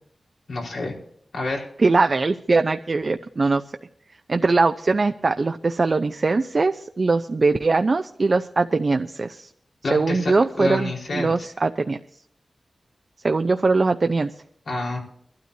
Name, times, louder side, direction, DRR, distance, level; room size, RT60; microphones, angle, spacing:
voice 1, 0.5-0.9 1.3-1.7 9.8-10.3 10.6-11.3 14.7-15.0, left 2 dB, 85° left, -1 dB, 4.4 m, -28 dB
voice 2, 1.8-3.6 4.3-9.5 9.9-12.0 13.2-14.3, right 3 dB, 50° right, 7 dB, 0.6 m, -21 dB
23.5 x 12.5 x 2.8 m, 0.66 s
wide cardioid pair, 95°, 0 cm